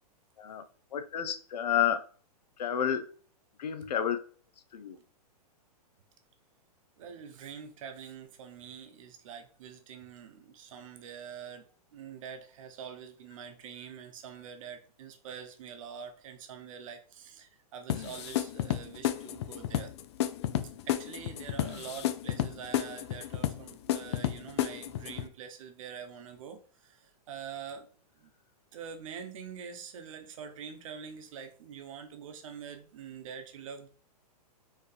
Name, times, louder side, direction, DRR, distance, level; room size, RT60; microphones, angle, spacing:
voice 1, 0.9-2.0 2.6-3.1 3.6-4.2 4.7-5.0, left 9 dB, 90° left, 10 dB, 0.7 m, -30 dB
voice 2, 7.0-19.9 20.8-27.9 28.2-28.3 28.7-33.9, right 7 dB, 55° right, 6 dB, 0.8 m, -45 dB
sound 1, 17.9-25.3, left 12 dB, 45° left, 0.4 m, -32 dB
4.6 x 3.1 x 3.3 m, 0.42 s
hypercardioid pair, 155°, 20 cm